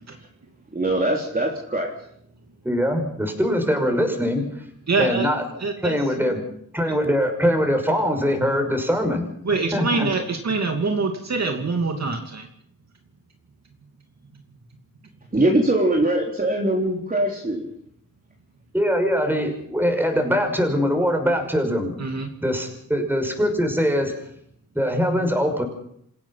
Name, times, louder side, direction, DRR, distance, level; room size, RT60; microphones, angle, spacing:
voice 1, 0.7-1.9 15.3-17.7, right 1 dB, 25° right, -1 dB, 3.7 m, -22 dB
voice 2, 2.6-4.6 5.0-5.4 5.8-6.4 6.7-9.2 9.7-10.1 18.7-21.9 22.4-24.1 24.7-25.6, equal, 5° right, 5 dB, 6.0 m, -22 dB
voice 3, 4.9-5.3 5.6-5.9 9.4-12.5 22.0-22.3, right 3 dB, 55° right, 3 dB, 2.8 m, -24 dB
27.5 x 16.0 x 5.9 m, 0.69 s
wide cardioid pair, 90°, 33 cm